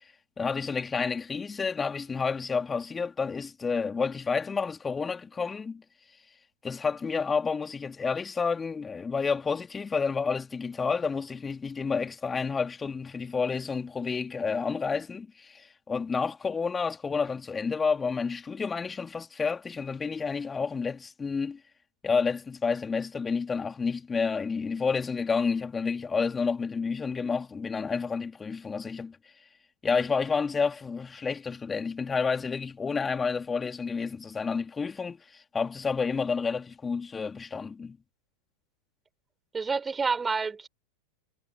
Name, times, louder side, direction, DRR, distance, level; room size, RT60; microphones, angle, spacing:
voice 1, 0.4-5.8 6.6-21.6 22.0-29.2 29.8-38.0, left 5 dB, 15° left, 4.0 m, -30 dB
voice 2, 39.5-40.7, right 4 dB, 15° right, 5.1 m, -28 dB
figure-of-eight pair, 90°, 0 cm